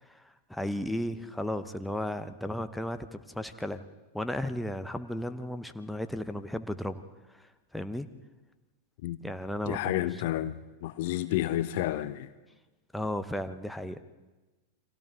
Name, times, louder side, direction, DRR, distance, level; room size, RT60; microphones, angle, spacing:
voice 1, 0.0-3.8 4.1-7.0 7.3-8.1 9.2-10.1 12.9-14.0, left 1 dB, 5° left, 1.0 m, -35 dB
voice 2, 9.7-12.3, left 14 dB, 50° left, 0.7 m, -30 dB
30.0 x 25.0 x 3.9 m
figure-of-eight pair, 90°, 0 cm